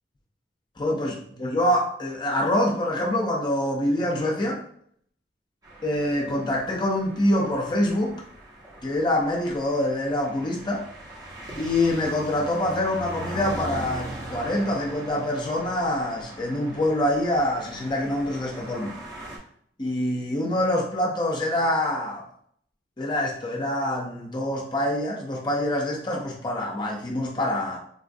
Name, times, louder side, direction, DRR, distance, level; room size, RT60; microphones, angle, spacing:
voice 1, 0.8-4.6 5.8-8.2 8.8-10.9 11.6-19.0 19.8-22.2 23.0-27.8, left 1 dB, 25° left, 0 dB, 0.5 m, -25 dB
sound 1, 5.6-19.4, right 1 dB, 20° right, 0.6 m, -40 dB
3.8 x 2.4 x 2.5 m, 0.64 s
head